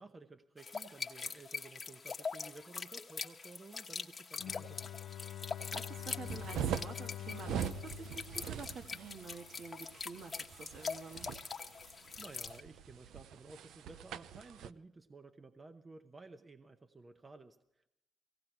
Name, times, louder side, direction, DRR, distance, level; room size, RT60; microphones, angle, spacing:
voice 1, 0.0-4.9 12.2-17.9, right 3 dB, 30° right, 8 dB, 0.9 m, -54 dB
sound 1, 0.6-12.6, left 5 dB, 35° left, 1.1 m, -44 dB
Bowed string instrument, 4.4-9.3, left 12 dB, 75° left, 0.8 m, -46 dB
voice 2, 5.7-11.3, right 5 dB, 60° right, 5 dB, 1.8 m, -49 dB
Towel Flutter, 6.0-14.7, right 9 dB, 80° right, 0.6 m, -43 dB
18.0 x 17.0 x 4.6 m, 0.83 s
cardioid pair, 90°, 0 cm